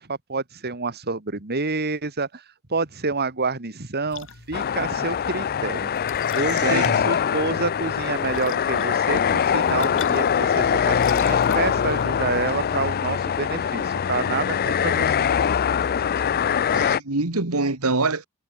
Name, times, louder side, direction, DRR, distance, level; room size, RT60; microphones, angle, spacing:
voice 1, 0.0-2.4 2.7-5.9 6.3-15.1, right 3 dB, 50° right, 2.1 m, -28 dB
sound 1, 4.1-12.1, left 5 dB, 65° left, 3.6 m, -41 dB
sound 2, 4.5-17.0, left 8 dB, 45° left, 0.4 m, -23 dB
voice 2, 6.6-7.1 16.3-18.2, right 3 dB, 85° right, 2.1 m, -25 dB
head